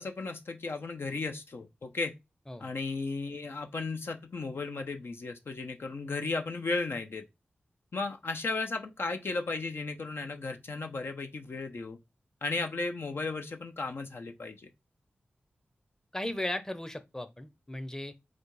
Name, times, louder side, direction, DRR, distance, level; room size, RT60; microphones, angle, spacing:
voice 1, 0.0-2.1 2.6-7.3 7.9-12.0 12.4-14.7, left 3 dB, 65° left, 0.7 m, -35 dB
voice 2, 16.1-18.1, left 1 dB, 15° left, 0.7 m, -36 dB
4.1 x 2.3 x 4.7 m
cardioid pair, 50°, 4 cm